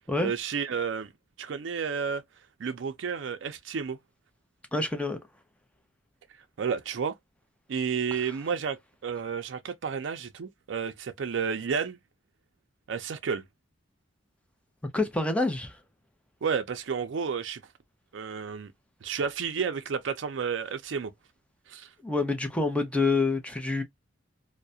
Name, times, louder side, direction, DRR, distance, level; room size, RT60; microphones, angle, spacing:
voice 1, 0.2-1.1 1.4-2.2 2.6-4.0 6.6-7.1 7.7-12.0 12.9-13.4 16.4-17.6 18.1-18.7 19.0-21.1 21.7-21.9, right 6 dB, 70° right, 0.4 m, -31 dB
voice 2, 4.7-5.2 8.1-8.2 14.9-15.8 22.0-23.8, left 3 dB, 5° left, 0.5 m, -27 dB
2.3 x 2.1 x 2.6 m
head